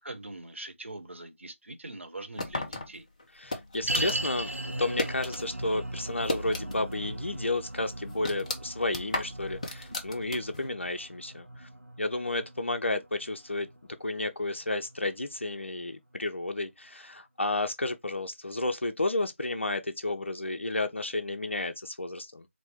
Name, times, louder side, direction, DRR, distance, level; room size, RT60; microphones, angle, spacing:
voice 1, 0.0-3.1, right 2 dB, 65° right, 1.2 m, -42 dB
sound 1, 2.4-5.5 5.8-7.0 7.3-7.4 7.8-10.7, left 2 dB, 30° left, 0.7 m, -35 dB
voice 2, 3.3-11.7 12.0-13.7 14.0-22.5, left 2 dB, 60° left, 0.9 m, -32 dB
sound 2, 3.9-15.2 15.4-15.5 16.2-16.3, right 1 dB, 85° right, 0.9 m, -38 dB
4.4 x 2.3 x 4.4 m
figure-of-eight pair, 165°, 7 cm